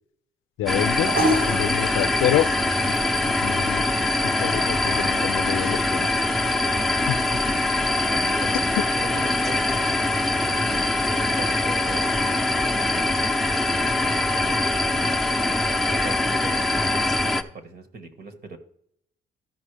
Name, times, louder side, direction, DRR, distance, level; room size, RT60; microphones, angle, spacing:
voice 1, 0.6-1.2 1.5-2.5 2.9-3.0 3.4-3.9 4.4-6.1 7.1-7.2, left 13 dB, 90° left, 0.4 m, -26 dB
sound 1, 0.7-17.4, left 2 dB, ahead, 0.7 m, -23 dB
sound 2, 0.7-17.2, equal, 85° right, 2.8 m, -36 dB
voice 2, 7.3-7.6 8.1-8.5 9.0-9.6 10.4-13.3 14.0-15.2 15.9-18.6, right 3 dB, 50° right, 1.5 m, -39 dB
13.5 x 5.2 x 3.3 m
cardioid pair, 90°, 20 cm